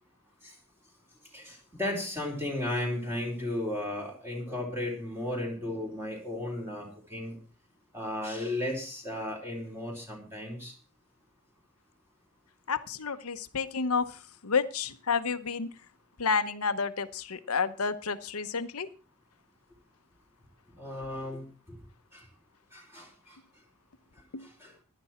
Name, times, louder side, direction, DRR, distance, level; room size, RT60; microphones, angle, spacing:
voice 1, 1.3-7.4 7.9-10.7 20.8-21.8 22.1-22.3 22.7-23.4 24.4-24.7, left 1 dB, 10° right, -1 dB, 3.9 m, -35 dB
voice 2, 12.7-15.7 16.2-18.9 24.3-24.4, left 5 dB, 75° left, 12 dB, 1.0 m, -30 dB
15.5 x 11.5 x 4.4 m, 0.35 s
head